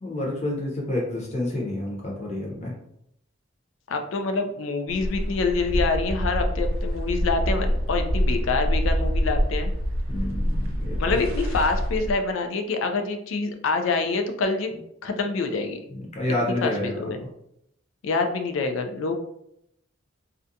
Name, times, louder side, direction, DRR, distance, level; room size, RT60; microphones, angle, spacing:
voice 1, 0.0-2.7 10.1-11.2 15.9-17.1, left 1 dB, 35° left, -2 dB, 0.8 m, -29 dB
voice 2, 3.9-9.7 11.0-14.7 15.0-15.8 16.5-17.2 18.0-19.1, left 3 dB, 65° left, 6 dB, 0.4 m, -26 dB
sound 1, 4.9-12.1, equal, 75° right, 0.4 m, -26 dB
2.4 x 2.2 x 2.6 m, 0.76 s
head